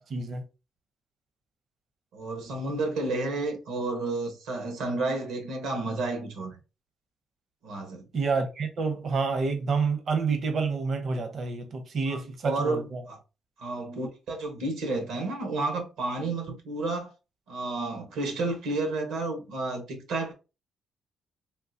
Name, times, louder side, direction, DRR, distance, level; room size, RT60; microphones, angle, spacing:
voice 1, 0.1-0.4 8.1-13.0, right 4 dB, 55° right, 0.7 m, -28 dB
voice 2, 2.1-6.6 7.6-8.1 12.1-13.2 13.6-17.1 17.5-20.3, right 2 dB, 85° right, 1.1 m, -31 dB
3.7 x 2.4 x 2.7 m
cardioid pair, 90°, 0 cm